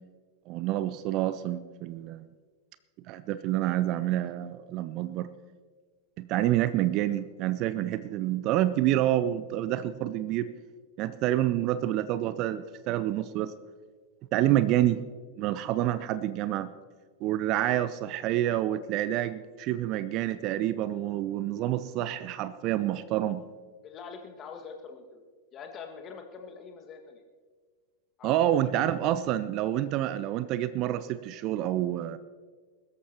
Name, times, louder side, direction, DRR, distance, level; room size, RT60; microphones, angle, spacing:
voice 1, 0.5-2.3 3.1-5.3 6.2-10.5 11.0-13.5 14.3-15.0 15.4-16.7 17.2-23.4 28.2-32.2, right 13 dB, 40° right, 15 dB, 0.6 m, -28 dB
voice 2, 23.8-25.2 25.5-27.2 28.2-28.7, left 5 dB, 30° left, 3 dB, 2.0 m, -44 dB
22.0 x 13.5 x 3.0 m, 1.5 s
figure-of-eight pair, 90°, 0 cm